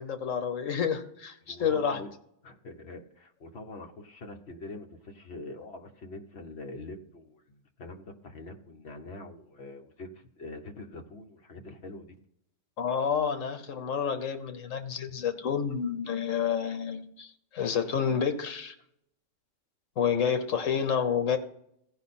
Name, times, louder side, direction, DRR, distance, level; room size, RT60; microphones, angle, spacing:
voice 1, 0.0-2.0 12.8-18.7 20.0-21.4, left 7 dB, 75° left, 9 dB, 1.3 m, -29 dB
voice 2, 1.4-2.1 2.4-12.1, left 2 dB, 55° left, 4 dB, 1.3 m, -44 dB
15.5 x 5.4 x 4.2 m, 0.75 s
omnidirectional pair, 1.3 m